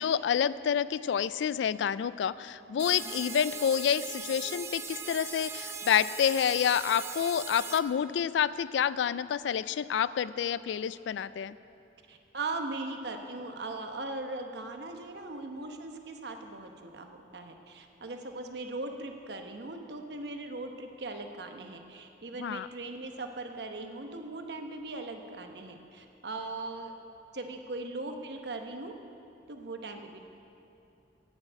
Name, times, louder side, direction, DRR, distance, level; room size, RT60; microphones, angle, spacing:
voice 1, 0.0-11.5 22.4-22.7, left 8 dB, 85° left, 17 dB, 0.3 m, -28 dB
sound 1, 2.8-7.8, right 5 dB, 15° right, 0.5 m, -40 dB
voice 2, 2.8-3.2 12.1-26.9 27.3-28.9 29.5-30.2, right 2 dB, 65° right, 5 dB, 1.0 m, -39 dB
9.6 x 8.0 x 8.4 m, 2.8 s
head